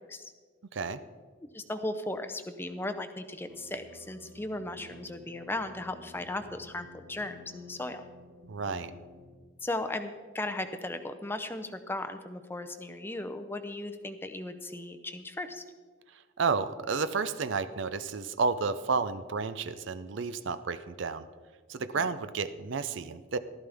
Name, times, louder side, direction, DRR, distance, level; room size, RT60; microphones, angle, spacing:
voice 1, 1.4-8.0 9.6-15.6 21.8-22.1, left 2 dB, 10° left, 8 dB, 0.5 m, -37 dB
sound 1, 3.5-9.4, equal, 90° right, 1.2 m, -53 dB
voice 2, 8.5-8.9 16.4-21.2 21.7-23.4, right 4 dB, 60° right, 13 dB, 0.5 m, -31 dB
15.0 x 12.5 x 3.5 m, 1.5 s
head